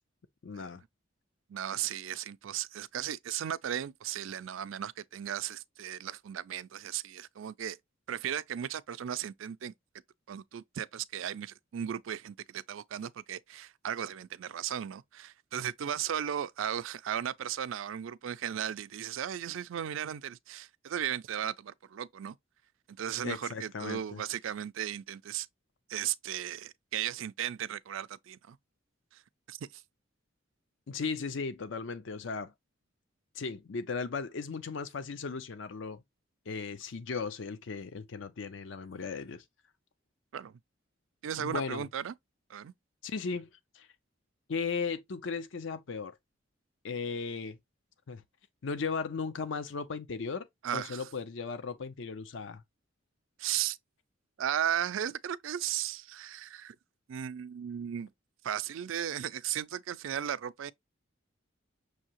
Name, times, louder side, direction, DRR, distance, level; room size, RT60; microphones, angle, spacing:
voice 1, 0.4-0.8 23.2-24.2 30.9-32.5 33.3-36.0 36.5-39.4 41.4-41.8 43.0-43.5 43.7-43.9 44.5-46.2 46.8-47.6 48.1-48.2 48.6-50.5 50.7-52.6, left 5 dB, 70° left, 0.5 m, -36 dB
voice 2, 1.5-7.8 8.1-9.7 10.3-22.4 22.9-25.5 25.9-28.6 29.5-29.6 40.3-40.6 41.2-42.1 42.5-42.7 50.6-51.0 53.4-53.8 54.4-56.7 57.1-58.1 58.4-60.7, right 9 dB, 85° right, 0.4 m, -36 dB
6.3 x 2.7 x 2.9 m
head